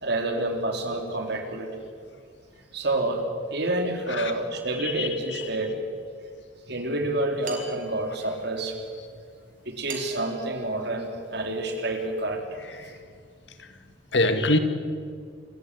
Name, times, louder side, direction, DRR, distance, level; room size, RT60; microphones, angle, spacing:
voice 1, 0.0-1.8 2.7-3.2 3.5-5.7 6.7-8.8 9.7-12.4, right 2 dB, 60° right, 4 dB, 3.6 m, -28 dB
voice 2, 4.8-5.4 12.8-12.9 14.1-14.6, left 2 dB, 70° left, 9 dB, 2.0 m, -24 dB
sound 1, 7.4-8.5 9.9-11.8, right 4 dB, 45° right, 4.4 m, -41 dB
27.5 x 14.5 x 9.8 m, 2.1 s
head